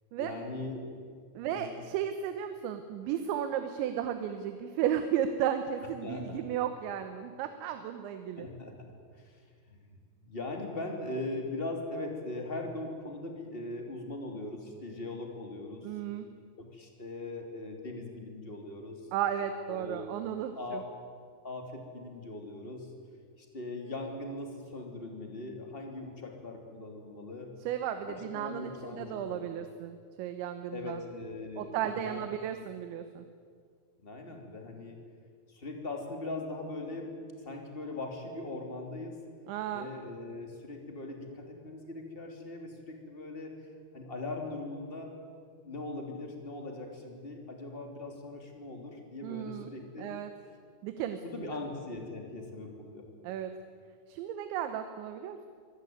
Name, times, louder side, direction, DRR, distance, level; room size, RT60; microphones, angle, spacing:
voice 1, 0.2-1.0 1.5-1.7 6.0-6.4 8.4-8.7 9.1-9.4 9.7-9.8 10.2-15.9 16.6-19.0 19.7-20.1 20.5-20.9 21.4-22.9 23.4-27.5 28.1-29.5 30.7-32.2 34.0-35.0 35.5-37.1 37.4-39.2 39.7-43.5 43.9-45.1 45.6-50.1 51.2-53.0, left 2 dB, 15° left, 3 dB, 2.6 m, -40 dB
voice 2, 1.4-8.5 15.8-16.3 19.1-20.8 27.7-31.0 31.6-33.3 39.5-39.9 49.2-49.7 50.0-50.3 50.8-51.6 53.2-53.6 54.1-55.5, right 9 dB, 85° right, 8 dB, 3.3 m, -34 dB
24.5 x 17.5 x 9.4 m, 2.1 s
omnidirectional pair, 5.1 m